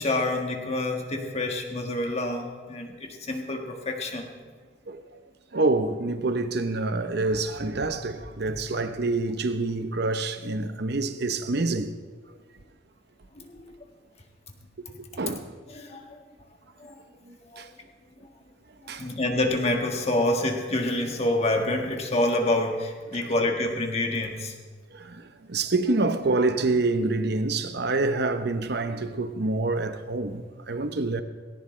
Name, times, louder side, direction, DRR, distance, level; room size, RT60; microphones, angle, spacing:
voice 1, 0.0-4.3 13.3-13.6 14.9-15.0 15.7-16.2 16.8-16.9 17.5-17.7 18.8-24.5, left 1 dB, 35° left, 1.7 m, -27 dB
voice 2, 5.5-11.9 15.2-15.5 17.3-17.7 18.9-19.1 24.9-31.2, right 3 dB, 60° right, 0.9 m, -27 dB
18.5 x 17.5 x 3.3 m
head